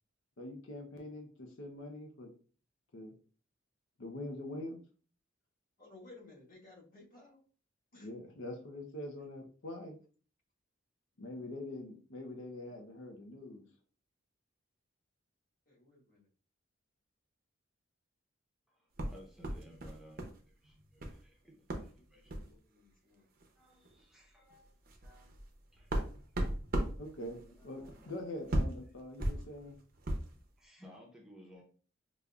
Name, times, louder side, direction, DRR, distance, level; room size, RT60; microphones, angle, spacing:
voice 1, 0.4-2.3 2.9-3.1 4.0-4.8 7.9-10.0 11.2-13.6 27.0-29.8, left 1 dB, 75° left, 3 dB, 0.7 m, -44 dB
voice 2, 5.8-7.4 7.9-8.1 12.6-12.7 15.7-16.3 22.0-23.3, left 2 dB, 45° left, -4 dB, 1.3 m, -58 dB
voice 3, 18.7-22.3 23.6-24.7 25.0-25.3 25.7-26.0 27.4-28.1 30.6-31.6, equal, ahead, -2 dB, 0.6 m, -58 dB
sound 1, 19.0-20.4 20.6-21.2 21.7-21.9 22.3-22.5 23.4-23.5 23.8-24.0 24.5-30.4, right 1 dB, 45° right, 0.6 m, -37 dB
5.0 x 2.5 x 2.3 m, 0.41 s
head